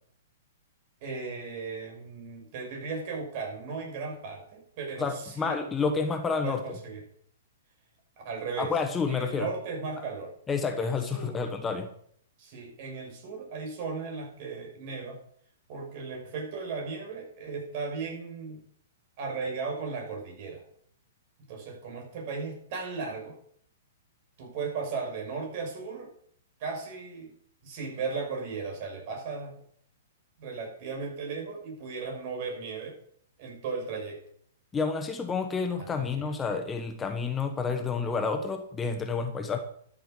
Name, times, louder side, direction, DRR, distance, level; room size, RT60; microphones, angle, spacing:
voice 1, 1.0-5.6 6.4-7.0 8.2-8.7 9.1-10.3 10.6-11.4 12.4-15.2 15.7-18.6 19.2-20.6 21.5-23.3 24.4-26.1 26.6-27.3 27.6-29.5 30.4-33.0 33.4-34.2 36.0-36.4, right 4 dB, 50° right, 1 dB, 5.9 m, -36 dB
voice 2, 5.0-6.6 8.6-9.5 10.0-10.1 10.5-11.9 34.7-39.6, left 5 dB, 15° left, 6 dB, 1.2 m, -29 dB
13.0 x 7.8 x 6.7 m, 0.65 s
hypercardioid pair, 120°, 0 cm